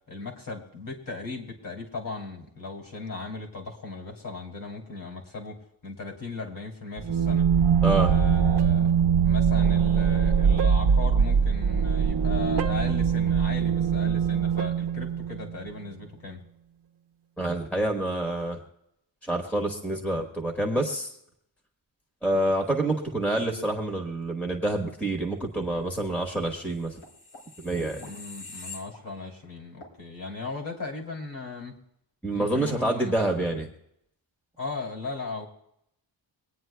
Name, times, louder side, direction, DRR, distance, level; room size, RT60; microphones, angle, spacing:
voice 1, 0.1-7.5 8.0-8.9 9.2-16.4 28.0-31.7 32.3-33.1 34.6-35.5, left 4 dB, 45° left, 0 dB, 2.7 m, -37 dB
sound 1, 7.0-15.5, right 7 dB, 60° right, 0.8 m, -22 dB
voice 2, 17.4-18.6 19.2-21.1 22.2-27.0 27.6-28.0 32.2-33.7, right 1 dB, 5° left, 1 dB, 1.4 m, -27 dB
sound 2, 26.5-29.4 29.8-30.0, left 3 dB, 80° left, 3.4 m, -45 dB
24.0 x 9.4 x 2.3 m, 0.76 s
wide cardioid pair, 155°, 46 cm